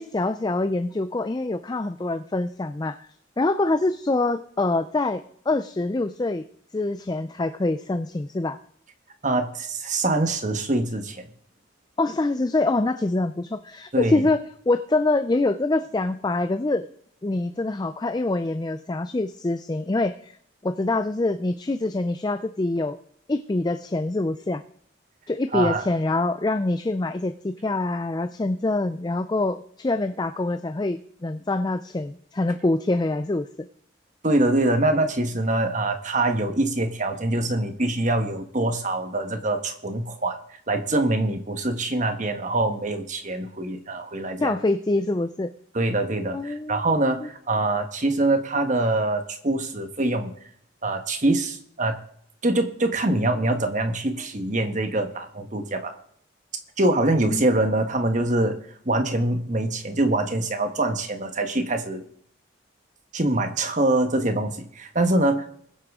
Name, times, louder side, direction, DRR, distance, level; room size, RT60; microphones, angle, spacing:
voice 1, 0.0-3.1 3.4-6.4 6.7-8.6 12.0-14.4 14.7-16.9 17.2-20.4 20.6-23.0 23.3-24.6 25.3-33.7 44.4-45.5 46.3-46.8 57.3-57.4, left 2 dB, 20° left, 10 dB, 0.4 m, -25 dB
voice 2, 9.2-11.3 13.9-14.2 25.5-25.8 34.2-40.4 40.7-44.6 45.7-50.3 50.8-52.0 52.4-55.9 56.8-58.6 58.8-62.0 63.1-65.5, right 2 dB, 40° right, 6 dB, 1.4 m, -24 dB
21.5 x 8.1 x 3.7 m, 0.66 s
head